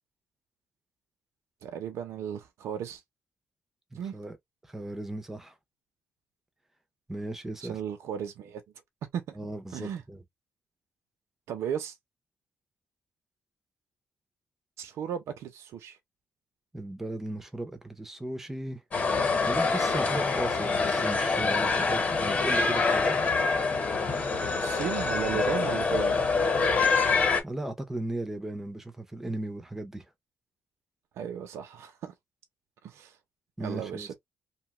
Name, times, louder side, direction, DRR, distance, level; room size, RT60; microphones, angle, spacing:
voice 1, 1.6-3.0 3.9-4.1 7.6-8.6 9.1-9.2 9.7-10.0 11.5-11.9 14.8-16.0 24.6-26.2 31.2-32.1 32.8-33.1 33.6-34.1, right 9 dB, 75° right, 0.7 m, -35 dB
voice 2, 3.9-4.4 4.7-5.5 7.1-7.8 9.4-10.2 16.7-18.8 19.5-23.2 27.4-30.1 33.6-34.1, right 1 dB, 5° right, 0.5 m, -36 dB
sound 1, 18.9-27.4, left 4 dB, 35° left, 1.0 m, -26 dB
2.8 x 2.3 x 2.9 m
cardioid pair, 175°, 5 cm